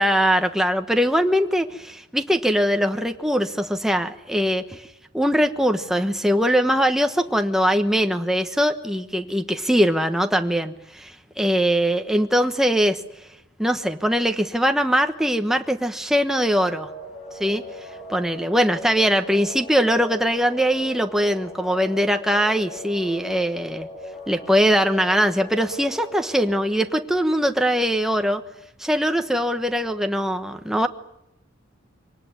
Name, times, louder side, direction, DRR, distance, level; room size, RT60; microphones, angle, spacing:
voice 1, 0.0-4.8 5.1-13.0 13.6-16.9 17.4-17.6 18.1-23.9 24.3-28.4 28.8-30.9, equal, ahead, 6 dB, 1.1 m, -21 dB
sound 1, 16.5-26.6, equal, 30° left, 7.5 m, -39 dB
24.5 x 19.0 x 9.7 m, 0.84 s
head